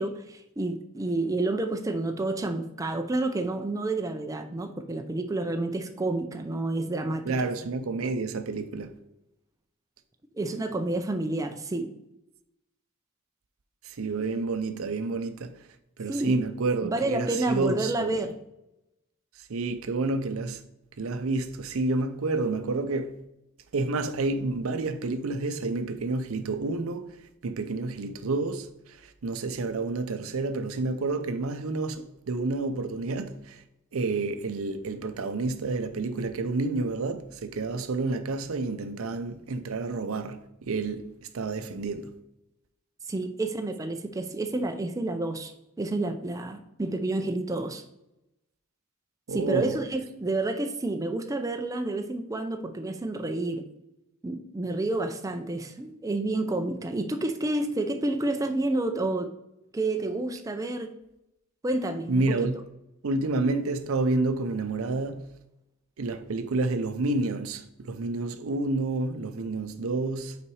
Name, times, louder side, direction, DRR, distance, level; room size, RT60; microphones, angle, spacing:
voice 1, 0.0-7.5 10.4-11.9 16.1-16.4 16.8-18.4 43.1-45.5 45.8-47.8 49.3-53.6 54.2-59.3 59.7-61.0 61.6-62.4, right 2 dB, 15° right, 0.4 m, -29 dB
voice 2, 7.3-8.9 13.8-15.5 16.0-18.2 19.4-20.6 21.0-23.2 23.7-27.2 27.4-33.6 33.9-40.4 40.7-42.1 49.3-49.8 62.1-62.6 63.0-65.2 66.0-70.4, right 3 dB, 80° right, 0.6 m, -29 dB
5.6 x 4.2 x 4.7 m
head